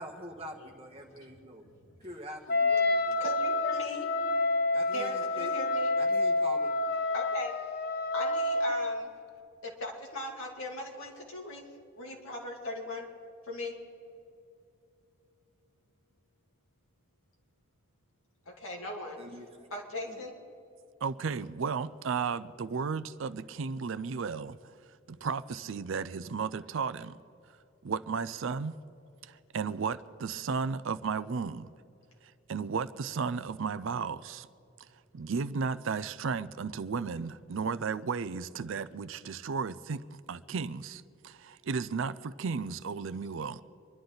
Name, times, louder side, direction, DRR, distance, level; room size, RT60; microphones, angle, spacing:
voice 1, 0.0-1.6 2.0-3.2 4.7-5.6 6.0-6.7 19.2-19.7 20.1-20.2, equal, 30° right, 1.4 m, -45 dB
voice 2, 1.6-1.9 3.2-4.1 4.9-5.9 7.1-7.5 8.1-9.1 9.6-11.6 12.0-13.1 13.4-13.8 18.6-19.2 19.7-20.3, left 1 dB, 75° left, 2.6 m, -39 dB
Wind instrument woodwind instrument, 2.5-9.1, left 2 dB, 45° left, 0.5 m, -28 dB
voice 3, 21.0-24.7 25.1-27.2 27.8-28.7 29.2-31.7 32.2-34.5 35.1-43.6, right 5 dB, 65° right, 0.5 m, -34 dB
26.0 x 11.5 x 3.9 m
head